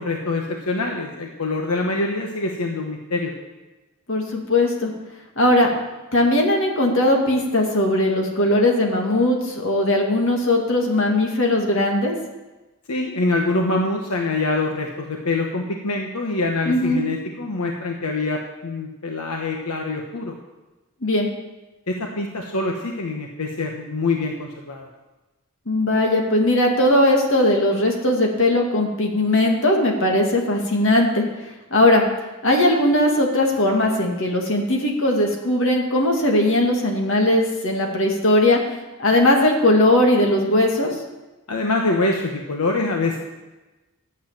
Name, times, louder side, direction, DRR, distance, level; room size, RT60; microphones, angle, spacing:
voice 1, 0.0-3.3 12.9-20.3 21.9-24.9 41.5-43.2, left 2 dB, 85° left, 1 dB, 1.2 m, -25 dB
voice 2, 4.1-4.9 5.4-5.7 6.1-12.1 16.7-17.0 21.0-21.3 25.7-31.2 31.7-32.0 32.4-38.6 39.0-40.9, left 1 dB, 60° left, 1 dB, 2.2 m, -19 dB
12.0 x 8.2 x 7.6 m, 1.1 s
head